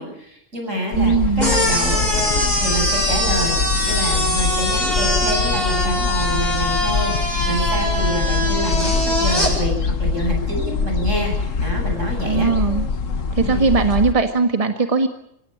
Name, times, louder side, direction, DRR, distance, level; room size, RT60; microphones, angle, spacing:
voice 1, 0.0-2.1 2.6-12.5 13.4-13.7, right 1 dB, 80° right, 2 dB, 8.3 m, -27 dB
sound 1, 0.9-14.1, left 5 dB, 85° left, 1.7 m, -23 dB
voice 2, 1.0-1.6 12.2-12.9 13.3-15.1, right 4 dB, 30° right, 6 dB, 1.6 m, -19 dB
sound 2, 1.4-9.5, equal, 35° left, 7.9 m, -22 dB
25.0 x 17.5 x 8.8 m, 0.73 s
omnidirectional pair, 1.3 m